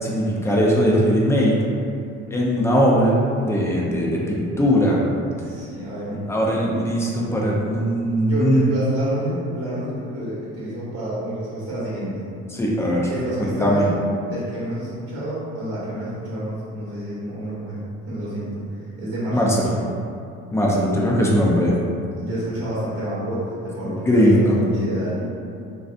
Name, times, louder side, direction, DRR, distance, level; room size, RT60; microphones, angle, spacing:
voice 1, 0.0-1.6 2.3-5.0 6.1-8.7 12.5-13.1 13.4-13.8 19.3-19.7 20.5-21.7 23.8-24.6, equal, 10° left, -4 dB, 0.5 m, -19 dB
voice 2, 5.4-6.2 8.3-12.3 12.9-14.0 14.2-17.8 18.1-19.9 22.1-25.2, right 1 dB, 50° right, -8 dB, 1.0 m, -29 dB
3.1 x 2.5 x 2.5 m, 2.4 s
supercardioid pair, 95°, 29 cm